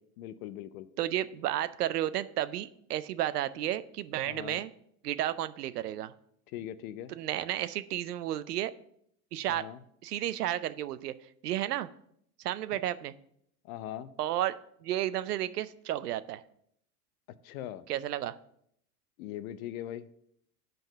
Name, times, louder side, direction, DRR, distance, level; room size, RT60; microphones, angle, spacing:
voice 1, 0.2-0.9 4.3-4.6 6.5-7.1 9.5-9.8 12.7-12.8 13.6-14.1 17.4-17.8 19.2-20.1, left 12 dB, 65° left, 14 dB, 0.7 m, -40 dB
voice 2, 1.0-4.7 5.0-6.1 7.1-8.7 9.3-9.7 10.0-11.1 11.4-11.9 12.4-13.1 14.2-16.4 17.9-18.4, right 13 dB, 85° right, 15 dB, 0.6 m, -32 dB
5.8 x 5.3 x 6.4 m, 0.70 s
hypercardioid pair, 90°, 45 cm